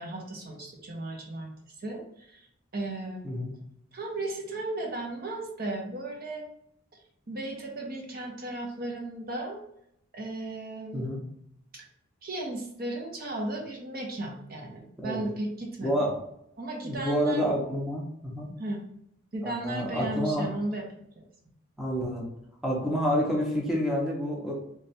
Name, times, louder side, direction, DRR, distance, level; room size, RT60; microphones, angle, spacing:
voice 1, 0.0-1.5 1.8-2.5 2.7-3.4 3.9-6.5 7.3-9.6 10.1-11.1 11.7-11.8 12.2-15.9 16.6-17.5 18.6-18.8 19.3-20.9 21.2-21.3, right 2 dB, 45° right, 0 dB, 0.8 m, -35 dB
voice 2, 15.8-16.2 16.8-18.5 19.4-20.5 21.8-22.3 22.6-24.5, equal, ahead, -3 dB, 0.7 m, -28 dB
3.3 x 2.4 x 4.1 m, 0.73 s
head